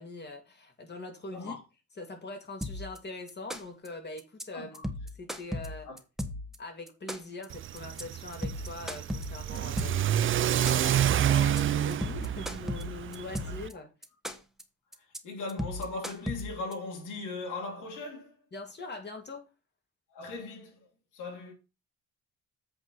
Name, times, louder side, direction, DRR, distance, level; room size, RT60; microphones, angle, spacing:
voice 1, 0.0-1.6 2.0-4.8 5.1-5.9 6.6-13.9 18.5-19.4, left 2 dB, 35° left, 2.8 m, -42 dB
sound 1, 2.6-3.0 3.3-3.9 4.2-4.4 4.7-6.6 6.9-7.4 7.8-8.0 8.3-10.1 10.4-11.0 11.3-11.6 11.9-13.7 14.0-14.6 14.9-15.2 15.5-16.7, left 1 dB, ahead, 1.3 m, -35 dB
voice 2, 4.5-4.9 5.9-6.0 15.2-18.4 20.1-20.9 21.1-21.5, left 3 dB, 85° left, 3.1 m, -38 dB
Car / Accelerating revving vroom, 7.5-13.7, right 10 dB, 45° right, 0.4 m, -28 dB
8.1 x 5.0 x 5.5 m
cardioid pair, 90°, 30 cm